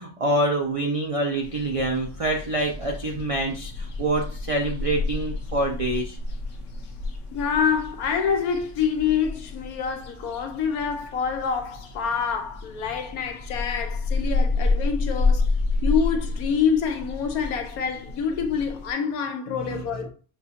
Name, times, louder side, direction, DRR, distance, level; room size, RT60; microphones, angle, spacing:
voice 1, 0.0-6.2 19.7-19.8, right 1 dB, 65° right, 0.3 m, -26 dB
sound 1, 1.4-18.9, left 3 dB, 60° left, 1.1 m, -30 dB
voice 2, 7.3-15.5 15.8-20.1, left 6 dB, 85° left, 1.2 m, -26 dB
6.5 x 2.4 x 2.8 m
omnidirectional pair, 1.5 m